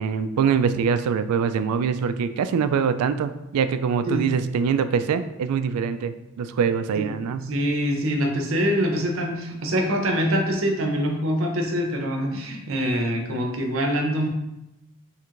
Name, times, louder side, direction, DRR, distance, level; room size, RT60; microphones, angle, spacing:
voice 1, 0.0-7.6, right 6 dB, 90° right, 14 dB, 0.3 m, -24 dB
voice 2, 7.5-14.3, equal, 60° right, 2 dB, 0.7 m, -24 dB
4.5 x 3.2 x 2.5 m, 0.92 s
head